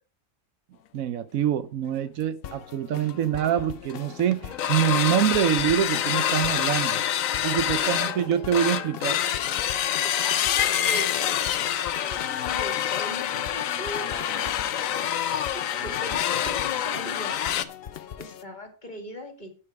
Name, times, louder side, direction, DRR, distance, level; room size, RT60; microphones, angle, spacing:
voice 1, 0.9-7.0 7.4-9.2, right 10 dB, 80° right, 1.1 m, -25 dB
sound 1, 2.4-18.4, left 9 dB, 55° left, 0.7 m, -42 dB
sound 2, 3.1-3.2 3.4-3.6 3.9-4.1 4.5-17.6, left 10 dB, 75° left, 1.1 m, -26 dB
voice 2, 7.8-8.3 8.7-8.9 10.0-11.1 11.5-17.6 18.2-19.5, left 1 dB, 35° left, 2.1 m, -40 dB
9.9 x 7.6 x 4.8 m
omnidirectional pair, 1.5 m